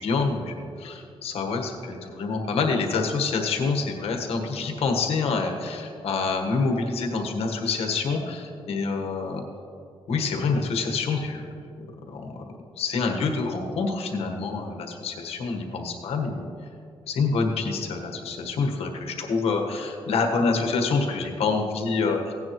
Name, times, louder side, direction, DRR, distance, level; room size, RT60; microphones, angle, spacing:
voice 1, 0.0-9.4 10.1-11.4 12.1-12.4 12.8-16.5 17.1-22.3, left 4 dB, 80° left, 2 dB, 1.3 m, -27 dB
16.5 x 9.7 x 3.1 m, 2.5 s
cardioid pair, 130°, 10 cm